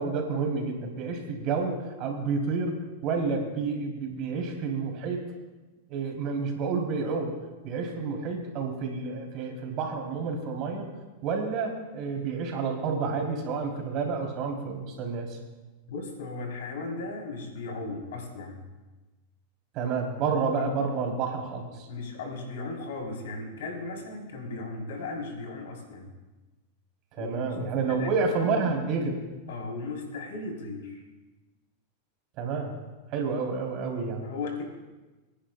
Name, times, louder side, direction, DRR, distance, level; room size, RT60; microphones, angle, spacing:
voice 1, 0.0-5.2 5.9-7.4 7.6-10.9 11.2-15.4 19.7-21.9 27.1-29.2 32.4-32.8 33.1-34.3, right 4 dB, 45° right, 1 dB, 3.2 m, -29 dB
voice 2, 15.9-18.6 20.6-20.7 21.9-26.1 27.2-27.6 27.9-28.5 29.5-31.0 34.2-34.6, left 3 dB, 80° left, 1 dB, 3.4 m, -36 dB
28.0 x 10.0 x 2.2 m, 1.2 s
supercardioid pair, 135°, 0 cm